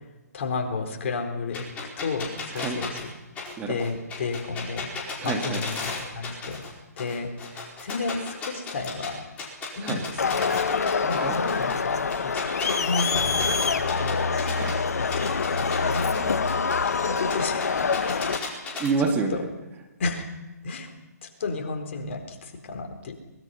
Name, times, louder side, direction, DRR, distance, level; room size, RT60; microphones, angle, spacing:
voice 1, 0.3-1.6 2.0-3.1 3.7-4.9 5.2-6.6 7.0-9.3 9.8-10.7 11.0-14.3 15.0-16.5 16.9-17.6 18.1-18.2 19.3-19.4 20.0-20.3 20.6-20.9 21.2-23.1, left 4 dB, 45° left, 4 dB, 4.1 m, -32 dB
sound 1, 1.5-6.7 7.0-9.1 9.4-14.7 15.1-18.9, left 4 dB, 15° left, 4.8 m, -34 dB
voice 2, 5.2-5.6 9.8-10.0 11.1-11.4 14.4-14.9 16.7-16.8 17.8-17.9 18.3-18.4 18.8-19.5, right 4 dB, 15° right, 2 dB, 2.1 m, -29 dB
Crowd, 10.2-18.4, left 5 dB, 65° left, 1.5 m, -25 dB
23.5 x 21.5 x 5.7 m, 1.0 s
figure-of-eight pair, 145°, 9 cm